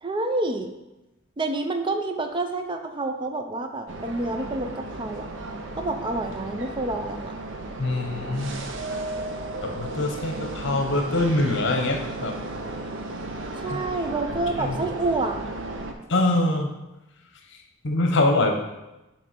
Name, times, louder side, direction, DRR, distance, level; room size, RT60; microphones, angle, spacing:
voice 1, 0.0-0.7 1.4-5.3 5.8-7.4 13.6-15.4, right 2 dB, 25° right, 6 dB, 0.4 m, -28 dB
sound 1, 3.9-15.9, right 2 dB, 65° right, 0.6 m, -34 dB
voice 2, 7.8-8.5 9.6-12.4 13.7-13.8 14.6-14.8 16.1-16.7 17.5-18.5, left 2 dB, 60° left, 3 dB, 0.9 m, -24 dB
6.9 x 3.2 x 5.2 m, 1.0 s
head